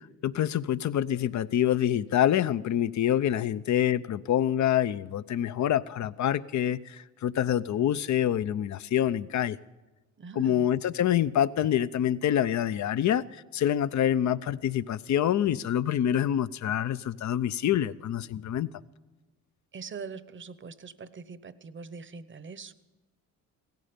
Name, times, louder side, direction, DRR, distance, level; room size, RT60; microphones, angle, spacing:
voice 1, 0.2-9.6 10.4-13.2 13.5-18.7, left 10 dB, 50° left, 0.7 m, -26 dB
voice 2, 10.2-10.7 19.7-22.7, right 5 dB, 30° right, 0.9 m, -42 dB
17.0 x 14.5 x 5.2 m
supercardioid pair, 70°, 36 cm